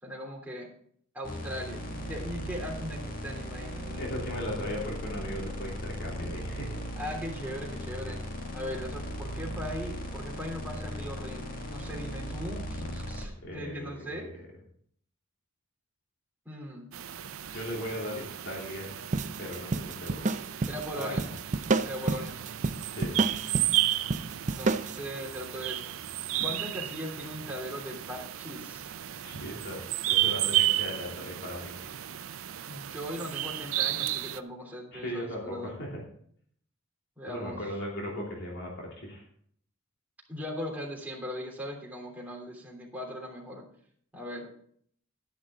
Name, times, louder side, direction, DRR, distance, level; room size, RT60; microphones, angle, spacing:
voice 1, 0.0-0.7 1.1-4.2 7.0-8.2 8.5-14.3 16.4-16.9 20.7-21.3 21.8-22.4 24.5-25.8 26.4-28.9 32.7-35.8 37.2-37.6 40.3-43.7 44.1-44.5, equal, 10° right, -2 dB, 3.2 m, -39 dB
sound 1, 1.2-13.3, equal, 45° left, 2.0 m, -37 dB
voice 2, 4.0-6.8 13.4-14.2 17.5-18.9 19.4-20.3 20.9-21.2 22.9-23.2 29.2-31.9 34.9-36.0 37.3-39.2, equal, 60° left, -3 dB, 3.1 m, -37 dB
sound 2, 16.9-34.4, right 13 dB, 90° right, 0.6 m, -33 dB
sound 3, 19.1-25.0, right 3 dB, 35° right, 0.6 m, -30 dB
12.0 x 10.5 x 3.7 m, 0.62 s
head